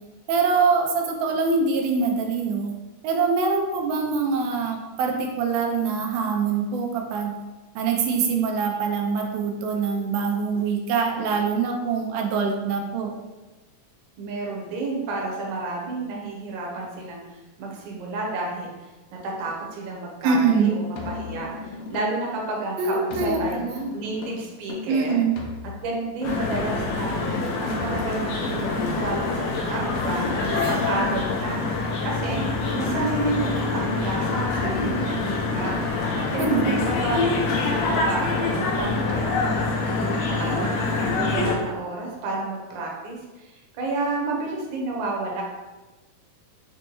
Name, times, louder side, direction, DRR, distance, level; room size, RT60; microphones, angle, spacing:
voice 1, 0.3-2.7 3.0-7.3 7.8-13.1 20.2-20.7 22.8-23.9 24.9-25.4 36.4-36.9, right 5 dB, 90° right, 2 dB, 2.4 m, -24 dB
voice 2, 14.2-18.7 19.2-23.6 23.9-25.1 25.8-32.4 32.7-45.4, right 2 dB, 70° right, -2 dB, 1.9 m, -31 dB
sound 1, 20.9-22.4 23.1-26.9 27.7-31.4 32.2-36.1 36.8-39.8 40.3-40.4, left 4 dB, 90° left, 2.4 m, -36 dB
sound 2, 26.2-41.6, left 3 dB, 75° left, 1.9 m, -26 dB
6.3 x 2.2 x 2.9 m, 1.2 s
omnidirectional pair, 4.2 m